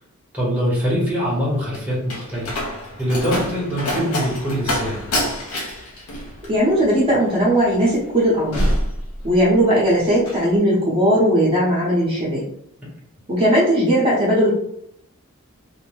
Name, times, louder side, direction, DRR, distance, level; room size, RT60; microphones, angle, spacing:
voice 1, 0.3-2.5 3.0-5.1, equal, 5° right, -6 dB, 1.0 m, -23 dB
Slam, 1.2-9.7 10.0-10.5, equal, 90° left, 0.7 m, -27 dB
voice 2, 6.5-8.6 9.2-12.4 13.3-14.5, equal, 25° right, -7 dB, 0.9 m, -18 dB
2.6 x 2.2 x 3.1 m, 0.72 s
head